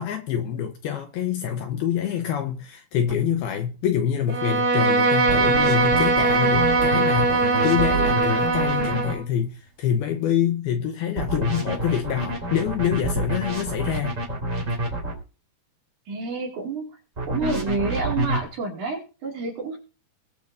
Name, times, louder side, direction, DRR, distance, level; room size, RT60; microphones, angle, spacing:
voice 1, 0.0-14.2, left 9 dB, 75° left, 2.5 m, -26 dB
sound 1, 3.1-3.2 5.3-9.1 11.2-15.1 17.2-18.4, right 2 dB, 20° right, 2.2 m, -28 dB
Bowed string instrument, 4.3-9.2, right 3 dB, 85° right, 1.5 m, -21 dB
voice 2, 16.1-16.9 17.2-19.8, right 3 dB, 50° right, 3.3 m, -29 dB
22.0 x 8.4 x 2.6 m
omnidirectional pair, 5.2 m